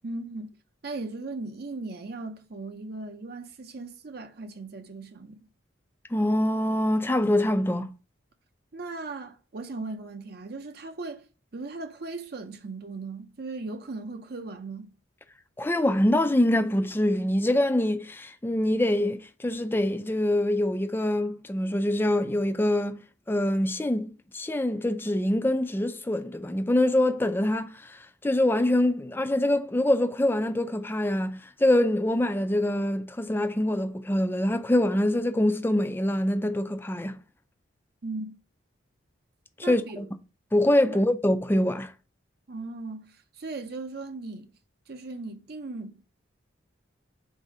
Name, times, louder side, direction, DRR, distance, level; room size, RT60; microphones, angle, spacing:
voice 1, 0.0-0.6 0.8-5.5 8.7-11.3 11.5-14.9 38.0-38.4 39.6-40.1 40.9-41.0 42.5-44.5 44.9-46.0, right 3 dB, 50° right, 0.6 m, -38 dB
voice 2, 6.1-7.9 15.6-23.0 23.3-37.2 39.6-40.0 40.5-41.9, left 1 dB, 10° left, 0.3 m, -25 dB
4.1 x 2.7 x 4.7 m
head